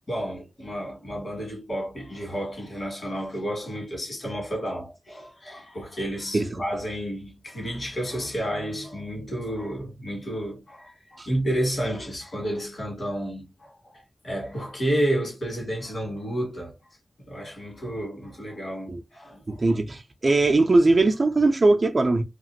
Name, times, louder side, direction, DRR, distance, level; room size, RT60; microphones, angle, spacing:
voice 1, 0.1-16.8 17.3-19.6, equal, 65° left, 1.7 m, -31 dB
voice 2, 19.5-22.2, right 2 dB, 50° right, 0.4 m, -20 dB
2.9 x 2.5 x 2.7 m
cardioid pair, 60°, 0 cm